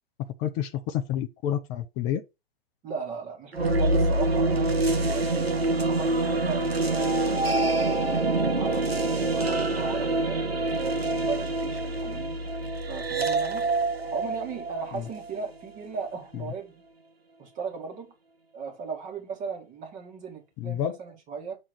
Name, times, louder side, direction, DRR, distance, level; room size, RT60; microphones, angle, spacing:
voice 1, 0.4-2.2 14.9-15.0 16.3-16.5 20.6-21.0, left 10 dB, 15° left, 0.3 m, -29 dB
voice 2, 2.8-5.5 5.9-8.0 8.6-12.4 12.9-13.7 14.1-16.8 17.4-18.1 18.5-21.6, right 5 dB, 25° right, 2.1 m, -37 dB
sound 1, 3.5-15.7, right 2 dB, 85° right, 1.4 m, -26 dB
6.5 x 3.6 x 5.0 m
figure-of-eight pair, 120°, 30 cm